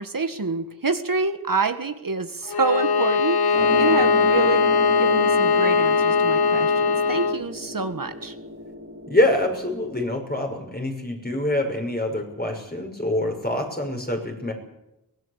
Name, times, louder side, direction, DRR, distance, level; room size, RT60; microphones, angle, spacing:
voice 1, 0.0-4.7 5.0-8.4, right 4 dB, 60° right, 8 dB, 1.7 m, -27 dB
Bowed string instrument, 2.5-7.4, left 5 dB, 80° left, 0.7 m, -20 dB
sound 1, 3.5-10.1, right 1 dB, 35° right, 4.0 m, -34 dB
voice 2, 9.1-14.5, left 1 dB, 25° left, 2 dB, 6.0 m, -25 dB
23.5 x 18.0 x 8.3 m, 0.92 s
wide cardioid pair, 55°, 37 cm